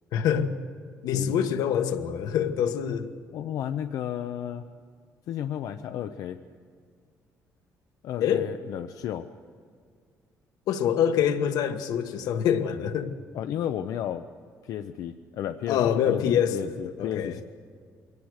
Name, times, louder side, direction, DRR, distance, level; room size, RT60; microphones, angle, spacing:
voice 1, 0.1-0.5 1.0-3.1 8.2-8.5 10.7-13.1 15.7-17.4, left 8 dB, 90° left, 8 dB, 1.4 m, -25 dB
voice 2, 3.3-4.6 5.3-6.4 8.0-9.3 13.3-14.3 14.6-15.8 16.1-17.4, left 10 dB, 70° left, 8 dB, 0.7 m, -33 dB
23.5 x 18.0 x 6.5 m, 2.1 s
cardioid pair, 165°, 6 cm